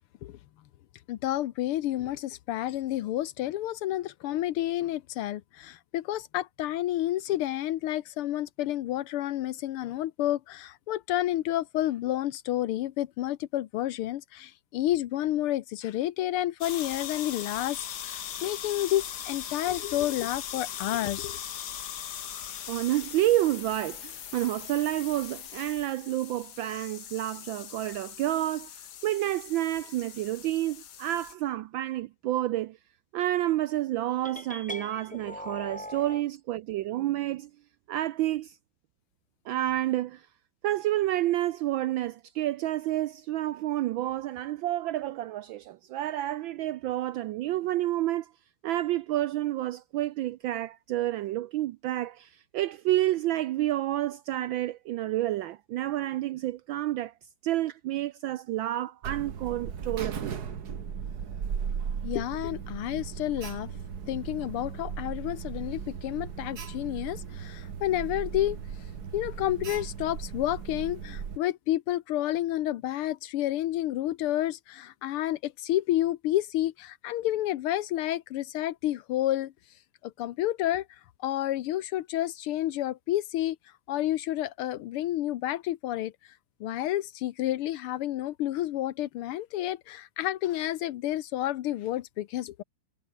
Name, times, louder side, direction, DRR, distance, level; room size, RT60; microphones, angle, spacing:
voice 1, 1.1-21.4 62.0-63.7 64.1-68.6 69.1-79.5 80.0-83.6 83.9-86.3 86.6-92.6, left 14 dB, 85° left, 1.7 m, -30 dB
sound 1, 16.6-31.3, left 10 dB, 55° left, 1.5 m, -40 dB
voice 2, 22.7-32.8 33.1-37.5 37.9-38.6 39.5-40.3 40.6-48.3 48.6-57.1 57.4-60.4, right 14 dB, 75° right, 1.3 m, -29 dB
sound 2, 34.2-36.2, left 1 dB, 5° left, 1.8 m, -40 dB
Alarm, 59.0-71.4, right 7 dB, 50° right, 2.0 m, -37 dB
omnidirectional pair, 2.4 m